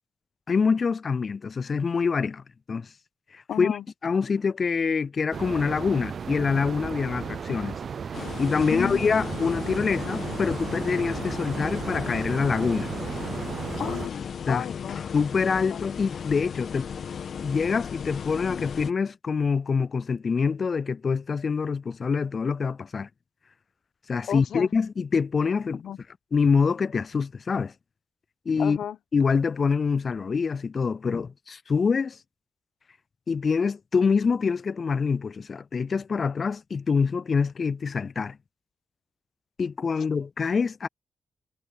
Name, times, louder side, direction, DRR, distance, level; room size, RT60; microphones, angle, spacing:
voice 1, 0.5-2.4 2.7-2.9 3.3-3.8 4.0-7.8 8.4-12.9 14.5-14.6 15.1-16.9 17.4-23.1 24.1-25.8 26.3-27.7 28.5-28.8 29.1-32.2 33.3-38.4 39.6-40.9, left 5 dB, 50° left, 0.3 m, -25 dB
voice 2, 3.5-3.8 8.7-9.0 13.8-15.0 15.7-15.8 24.3-24.7 25.8-26.0 28.6-29.0, left 9 dB, 85° left, 1.2 m, -33 dB
sound 1, 5.3-14.1, right 6 dB, 60° right, 0.4 m, -34 dB
sound 2, 8.1-18.9, left 7 dB, 70° left, 1.5 m, -36 dB
cardioid pair, 85°, 0 cm